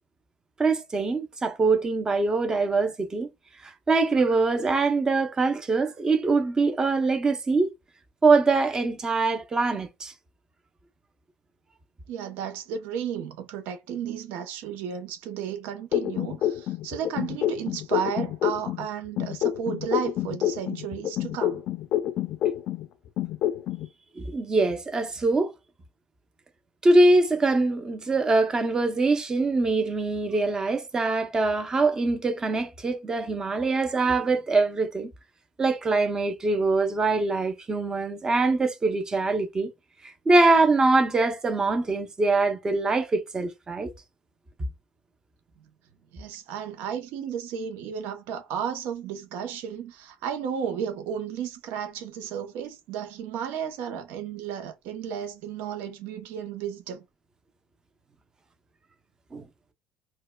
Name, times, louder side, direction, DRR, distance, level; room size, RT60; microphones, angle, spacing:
voice 1, 0.6-3.3 3.6-7.7 8.2-10.1 24.2-25.5 26.8-35.1 35.6-39.7 40.0-43.9 59.3-59.5, right 3 dB, 20° right, 0.6 m, -23 dB
voice 2, 12.1-21.6 46.1-57.0, right 8 dB, 70° right, 0.7 m, -33 dB
sound 1, 15.9-18.9 19.2-22.9 23.2-23.9, left 12 dB, 55° left, 0.4 m, -27 dB
4.5 x 2.2 x 2.2 m
cardioid pair, 125°, 3 cm